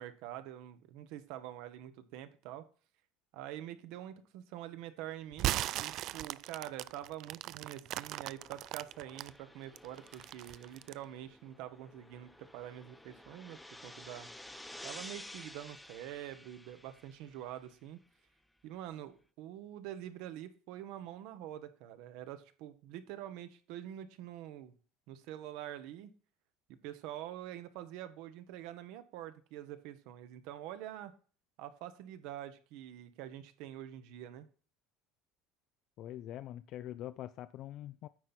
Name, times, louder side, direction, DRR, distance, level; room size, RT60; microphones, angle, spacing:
voice 1, 0.0-2.6 3.3-14.3 14.8-18.0 18.6-24.7 25.1-26.1 26.7-31.1 31.6-34.5, right 12 dB, 75° right, 11 dB, 1.1 m, -46 dB
sound 1, 5.3-9.3 9.8-11.0, right 15 dB, 55° right, 0.3 m, -37 dB
sound 2, 8.1-17.7, left 1 dB, 5° left, 0.6 m, -52 dB
voice 2, 36.0-38.1, left 12 dB, 55° left, 12 dB, 0.4 m, -44 dB
9.3 x 4.2 x 6.0 m, 0.39 s
cardioid pair, 125°, 0 cm